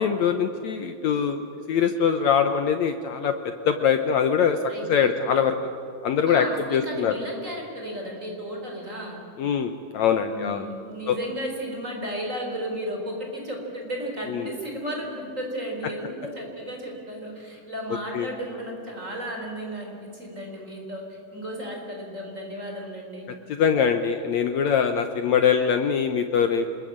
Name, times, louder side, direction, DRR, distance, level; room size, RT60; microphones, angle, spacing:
voice 1, 0.0-1.4 1.7-3.3 3.6-4.6 4.9-5.5 6.0-6.5 6.7-7.1 9.4-10.7 11.1-11.2 14.3-14.5 18.1-18.3 23.6-26.6, left 7 dB, 80° left, 8 dB, 1.6 m, -22 dB
voice 2, 4.7-5.1 6.3-9.2 10.2-23.3, equal, 20° right, 1 dB, 4.2 m, -34 dB
27.0 x 21.5 x 8.7 m, 2.6 s
omnidirectional pair, 4.4 m